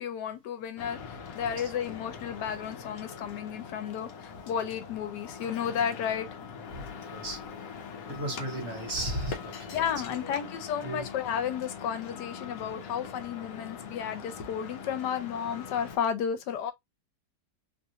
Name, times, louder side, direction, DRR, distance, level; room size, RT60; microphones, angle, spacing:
voice 1, 0.0-6.3 9.7-16.7, left 8 dB, 85° left, 1.3 m, -33 dB
sound 1, 0.8-16.0, left 6 dB, 65° left, 1.0 m, -42 dB
voice 2, 1.4-1.7 6.7-7.4 8.1-9.9 10.2-10.4 10.8-11.1, right 1 dB, 45° right, 1.4 m, -36 dB
3.1 x 2.5 x 2.7 m
omnidirectional pair, 1.8 m